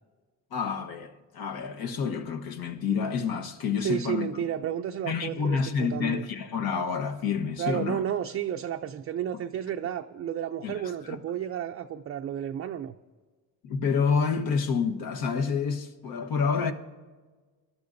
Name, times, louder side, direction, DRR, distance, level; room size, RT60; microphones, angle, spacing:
voice 1, 0.5-4.3 5.0-8.0 10.6-10.7 11.0-11.2 13.6-16.7, left 6 dB, 65° left, 1.3 m, -28 dB
voice 2, 3.8-6.2 7.6-12.9, right 10 dB, 35° right, 0.4 m, -32 dB
25.0 x 12.5 x 2.6 m
cardioid pair, 115°, 38 cm